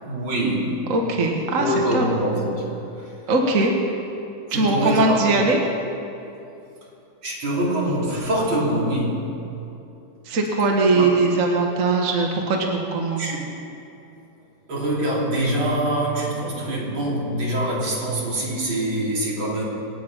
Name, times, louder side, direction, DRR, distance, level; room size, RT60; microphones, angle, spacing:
voice 1, 0.0-0.8 1.5-3.1 4.5-5.4 7.2-9.3 10.9-11.0 13.2-13.4 14.7-19.7, right 1 dB, 80° right, -4 dB, 4.0 m, -24 dB
voice 2, 0.9-2.0 3.3-3.7 4.5-5.6 10.3-13.3, right 3 dB, 45° right, 1 dB, 1.7 m, -20 dB
25.0 x 9.3 x 5.5 m, 2.8 s
omnidirectional pair, 2.2 m